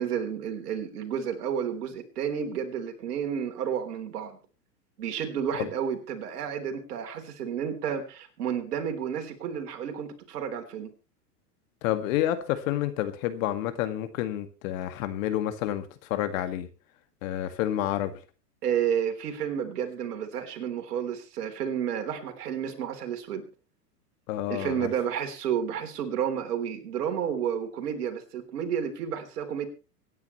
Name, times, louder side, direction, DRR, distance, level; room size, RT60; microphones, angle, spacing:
voice 1, 0.0-4.4 5.0-10.9 18.6-23.4 24.5-29.7, right 8 dB, 70° right, 5 dB, 3.6 m, -31 dB
voice 2, 11.8-16.7 17.2-18.1 24.3-24.9, left 12 dB, 55° left, 9 dB, 2.1 m, -29 dB
24.5 x 10.5 x 3.2 m, 0.33 s
hypercardioid pair, 115°, 48 cm